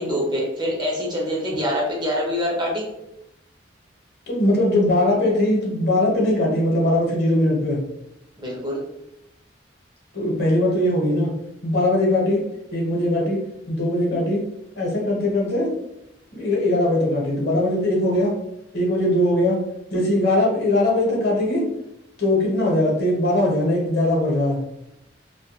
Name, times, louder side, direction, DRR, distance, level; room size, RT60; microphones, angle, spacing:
voice 1, 0.0-2.9 8.4-8.8, equal, 25° right, -2 dB, 0.6 m, -25 dB
voice 2, 4.3-7.8 10.1-11.3 11.6-12.4 12.7-14.4 14.7-15.7 16.3-18.4 18.7-19.6 19.9-21.7 22.2-24.6, left 1 dB, 60° left, -3 dB, 0.8 m, -20 dB
2.2 x 2.2 x 2.8 m, 0.86 s
head